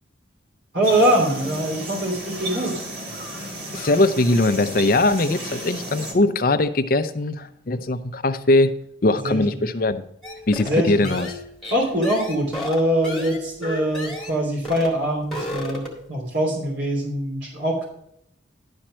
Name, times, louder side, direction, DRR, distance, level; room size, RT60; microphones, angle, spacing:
voice 1, 0.7-2.9 9.1-9.6 10.6-11.2 11.7-17.9, right 1 dB, 75° right, -2 dB, 3.1 m, -23 dB
sound 1, 0.8-6.1, right 1 dB, 55° right, 1.9 m, -33 dB
voice 2, 3.7-8.7 9.0-10.0 10.5-11.3, left 2 dB, 50° left, 10 dB, 0.6 m, -20 dB
sound 2, 10.2-14.4 14.6-15.0 15.2-16.1, left 1 dB, ahead, 1.9 m, -32 dB
11.5 x 4.4 x 6.2 m, 0.72 s
head